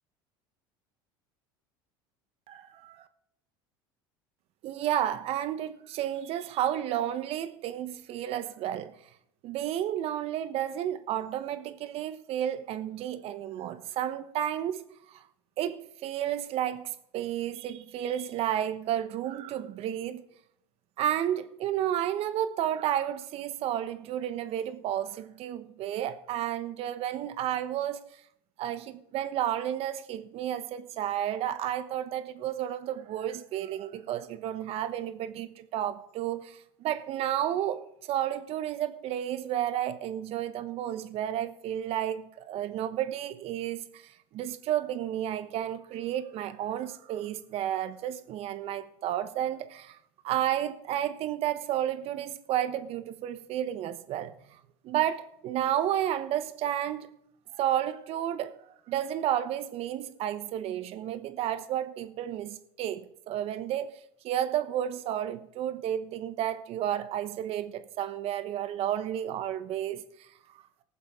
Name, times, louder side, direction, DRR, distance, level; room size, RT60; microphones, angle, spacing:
voice 1, 2.5-3.1 4.6-8.9 9.4-15.2 15.6-20.2 21.0-28.2 28.6-50.0 50.2-57.1 57.5-58.6 58.9-63.9 64.2-70.3, right 11 dB, 55° right, 1.1 m, -32 dB
19.0 x 7.4 x 3.8 m
supercardioid pair, 90°, 12 cm